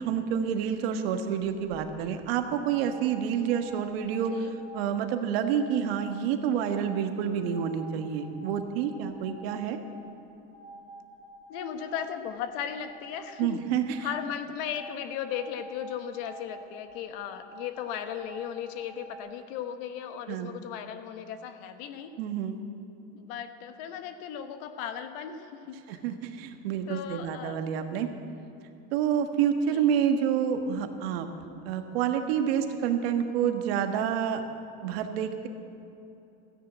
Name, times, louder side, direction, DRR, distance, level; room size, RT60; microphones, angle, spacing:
voice 1, 0.0-4.3 4.7-9.8 13.4-14.1 20.3-20.5 22.2-22.6 25.9-28.1 28.9-31.3 31.6-34.4 34.8-35.5, right 8 dB, 80° right, 6 dB, 1.4 m, -28 dB
sound 1, 1.6-1.8 2.6-5.0 5.5-6.2 6.6-7.0 7.4-10.1 10.5-12.4 12.7-13.4 13.9-14.2 14.7-16.9 17.4-19.2, right 1 dB, 15° left, 3.8 m, -48 dB
voice 2, 11.5-13.6 14.0-22.1 23.1-26.0 26.9-27.6 29.7-29.8, left 9 dB, 65° left, 8 dB, 1.3 m, -36 dB
14.0 x 10.5 x 8.0 m, 2.9 s
supercardioid pair, 135°, 30 cm